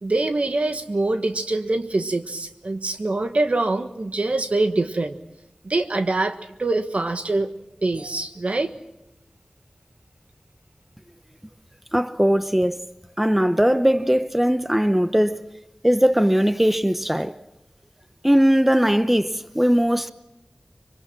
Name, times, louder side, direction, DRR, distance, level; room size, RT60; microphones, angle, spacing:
voice 1, 0.0-5.2 5.6-7.5 7.8-8.7, right 2 dB, 65° right, 1.5 m, -24 dB
voice 2, 11.9-12.8 13.2-15.3 15.8-17.3 18.2-20.1, equal, 5° right, 0.8 m, -19 dB
25.0 x 23.5 x 6.0 m
wide cardioid pair, 55°, 2 cm